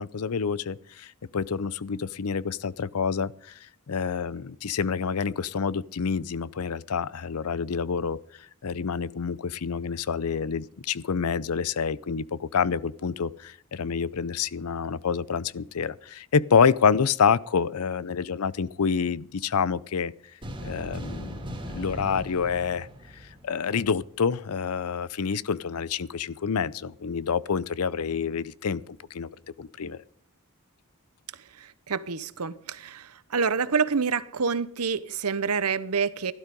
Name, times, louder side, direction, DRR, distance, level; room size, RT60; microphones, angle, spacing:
voice 1, 0.0-20.1 20.6-22.9 23.1-29.3 29.6-30.0, left 6 dB, 80° left, 0.6 m, -27 dB
sound 1, 20.4-23.9, equal, 25° right, 3.0 m, -38 dB
voice 2, 31.6-36.3, right 5 dB, 90° right, 0.9 m, -27 dB
16.0 x 12.0 x 5.3 m
head